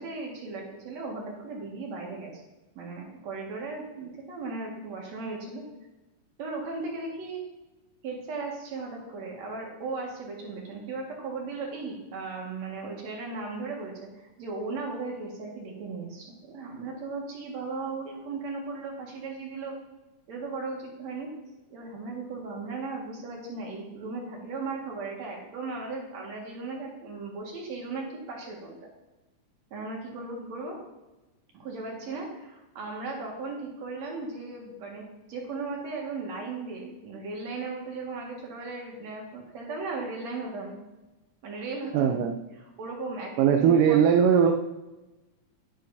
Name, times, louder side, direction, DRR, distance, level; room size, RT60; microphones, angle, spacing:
voice 1, 0.0-2.3 2.8-5.6 6.4-7.4 8.0-19.7 20.3-21.3 21.7-28.8 29.7-30.7 31.5-40.7 41.4-42.2 42.8-44.0, right 3 dB, 60° right, -1 dB, 3.0 m, -36 dB
voice 2, 41.9-42.4 43.4-44.5, right 8 dB, 90° right, 4 dB, 2.2 m, -20 dB
10.5 x 10.5 x 2.7 m, 1.1 s
omnidirectional pair, 3.6 m